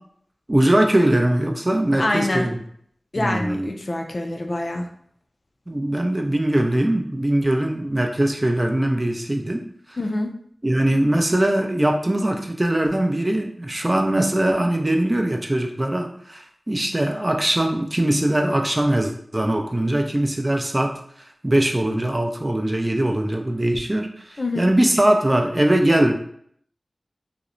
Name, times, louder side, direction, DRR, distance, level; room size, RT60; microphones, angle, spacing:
voice 1, 0.5-2.6 3.2-3.7 5.7-9.6 9.9-10.0 10.6-21.0 21.4-26.1, right 1 dB, 30° right, 3 dB, 0.4 m, -21 dB
voice 2, 2.0-2.5 3.1-4.9 10.0-10.3 24.4-24.7, left 1 dB, 55° left, 2 dB, 0.4 m, -25 dB
2.8 x 2.0 x 2.5 m, 0.64 s
cardioid pair, 40°, 0 cm